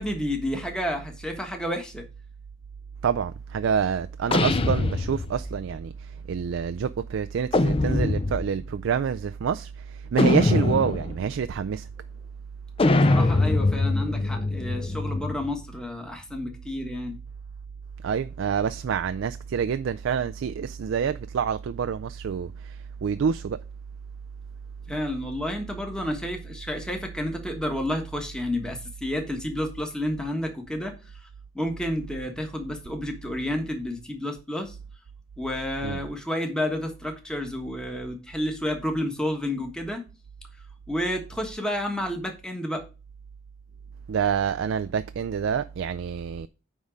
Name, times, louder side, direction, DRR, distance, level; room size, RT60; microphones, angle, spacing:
voice 1, 0.0-2.0 12.9-17.2 24.9-30.9 31.5-34.8 35.4-40.0 40.9-42.9, left 1 dB, 5° left, 1.3 m, -30 dB
voice 2, 3.0-11.9 18.0-23.6 35.8-36.0 44.1-46.5, right 7 dB, 75° right, 0.4 m, -27 dB
sound 1, 4.3-5.6 7.5-8.6 10.2-11.2 12.8-15.5, left 2 dB, 30° left, 0.5 m, -23 dB
9.5 x 3.6 x 5.1 m
head